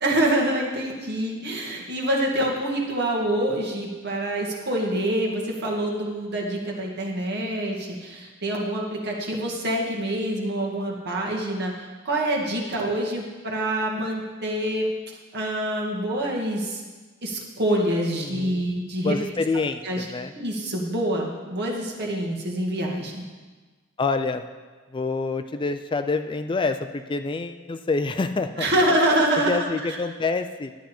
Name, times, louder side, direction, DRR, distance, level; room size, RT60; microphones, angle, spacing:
voice 1, 0.0-14.9 15.3-16.8 17.2-19.2 19.5-20.1 20.3-23.2 28.6-30.0, right 1 dB, 55° right, -1 dB, 1.9 m, -26 dB
voice 2, 18.1-18.6 19.0-20.3 24.0-24.4 24.9-28.7 29.5-30.7, left 3 dB, 25° left, 9 dB, 0.4 m, -27 dB
11.5 x 9.2 x 4.4 m, 1.4 s
head